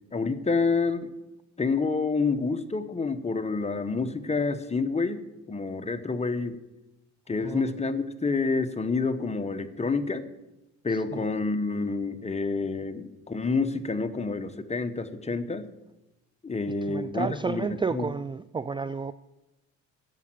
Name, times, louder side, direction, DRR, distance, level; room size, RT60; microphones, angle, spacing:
voice 1, 0.1-1.1 1.6-6.6 7.3-10.2 10.8-15.7 16.4-18.1, left 4 dB, 20° left, 9 dB, 1.1 m, -28 dB
voice 2, 10.9-11.2 16.6-19.1, right 5 dB, 15° right, 14 dB, 0.4 m, -32 dB
10.5 x 7.3 x 9.0 m, 0.98 s
cardioid pair, 90°, 30 cm